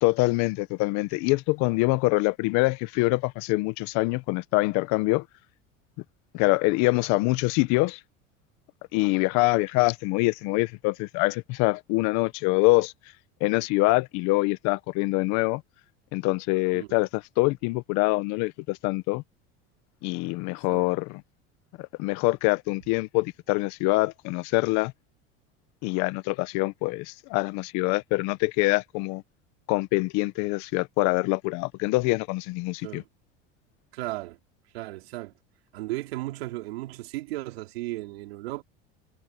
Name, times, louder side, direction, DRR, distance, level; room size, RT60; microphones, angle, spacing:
voice 1, 0.0-5.2 6.3-8.0 8.9-12.9 13.4-15.6 16.1-19.2 20.0-21.2 21.8-24.9 25.8-29.2 29.7-33.0, left 23 dB, 65° left, 1.3 m, -25 dB
voice 2, 33.9-34.4 34.7-35.3 35.7-38.6, right 18 dB, 85° right, 4.8 m, -35 dB
supercardioid pair, 100°, 30 cm